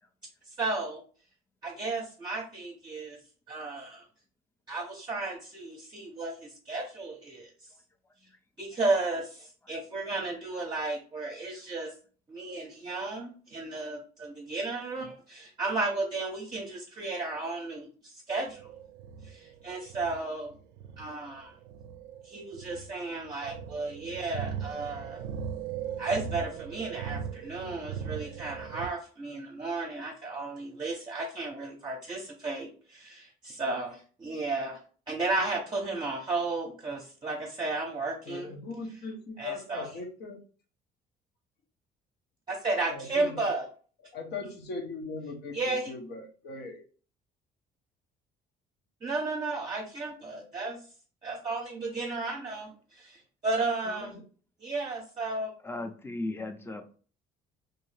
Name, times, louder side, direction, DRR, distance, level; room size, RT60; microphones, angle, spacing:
voice 1, 0.6-1.0 1.6-3.2 3.5-4.1 4.7-7.5 8.6-11.9 12.3-18.6 19.2-20.5 21.0-21.5 22.2-25.2 26.0-34.8 35.1-38.5 39.4-39.9 42.5-43.6 45.5-45.9 49.0-50.8 51.2-54.1 54.6-55.5, right 3 dB, 30° right, -1 dB, 0.7 m, -33 dB
sound 1, 18.5-28.9, right 7 dB, 85° right, 0.4 m, -39 dB
voice 2, 38.3-40.4 42.9-43.5 44.1-46.8 50.2-50.5 53.8-54.3, left 3 dB, 75° left, 3 dB, 0.8 m, -40 dB
voice 3, 55.6-57.0, left 2 dB, 15° left, 7 dB, 0.5 m, -37 dB
2.7 x 2.7 x 3.2 m, 0.41 s
cardioid pair, 110°, 17 cm